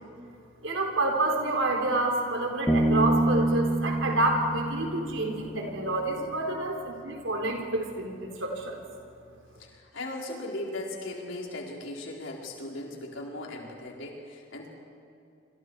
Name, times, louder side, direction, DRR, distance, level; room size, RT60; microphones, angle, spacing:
voice 1, 0.6-8.8, right 2 dB, 85° right, 2 dB, 4.2 m, -28 dB
Bass guitar, 2.7-6.2, right 1 dB, 10° left, 2.1 m, -27 dB
voice 2, 9.6-14.7, left 1 dB, 80° left, -1 dB, 4.6 m, -38 dB
27.0 x 26.5 x 4.9 m, 2.6 s
head